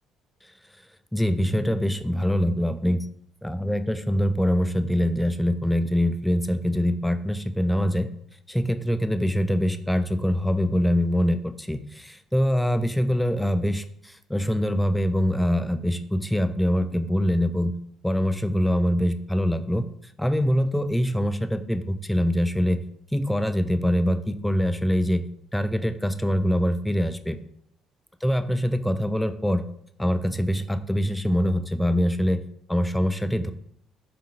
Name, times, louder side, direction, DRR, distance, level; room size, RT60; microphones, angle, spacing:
voice 1, 1.1-3.1 3.4-8.1 8.5-17.7 18.0-19.9 20.2-22.8 23.1-25.2 25.5-27.4 28.2-29.6 30.0-32.4 32.7-33.5, equal, 5° left, 10 dB, 0.4 m, -24 dB
3.6 x 2.8 x 3.6 m, 0.69 s
hypercardioid pair, 55°, 0 cm